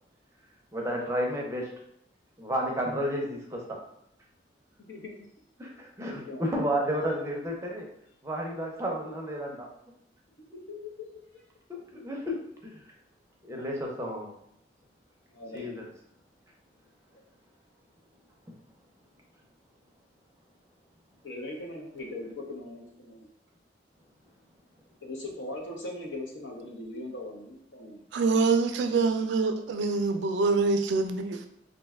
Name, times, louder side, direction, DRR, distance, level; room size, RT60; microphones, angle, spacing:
voice 1, 0.7-1.7 2.4-3.8 5.6-7.8 8.2-9.7 11.7-12.4 12.6-12.8 13.4-14.3 15.5-15.9, equal, 15° right, -1 dB, 0.5 m, -31 dB
voice 2, 4.8-5.2 6.1-6.5 10.5-11.1 15.3-15.9 17.1-17.3 21.2-23.3 25.0-28.0, left 2 dB, 90° left, 0 dB, 0.7 m, -40 dB
voice 3, 28.1-31.5, right 4 dB, 70° right, 7 dB, 0.3 m, -25 dB
2.6 x 2.2 x 3.4 m, 0.71 s
head